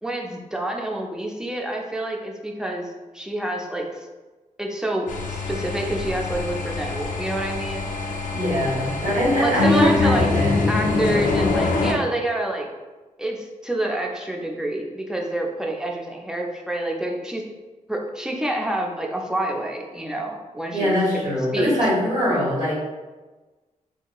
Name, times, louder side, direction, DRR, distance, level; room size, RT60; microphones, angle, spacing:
voice 1, 0.0-4.0 4.6-7.8 9.4-10.3 10.7-12.7 13.2-17.4 17.9-21.0 21.2-21.8, right 1 dB, 5° right, 0 dB, 0.4 m, -27 dB
sound 1, 5.1-11.9, left 3 dB, 85° left, 0.4 m, -24 dB
voice 2, 8.3-10.6 20.7-22.7, equal, 80° right, -7 dB, 1.5 m, -22 dB
3.7 x 2.7 x 2.3 m, 1.2 s
wide cardioid pair, 155°, 13 cm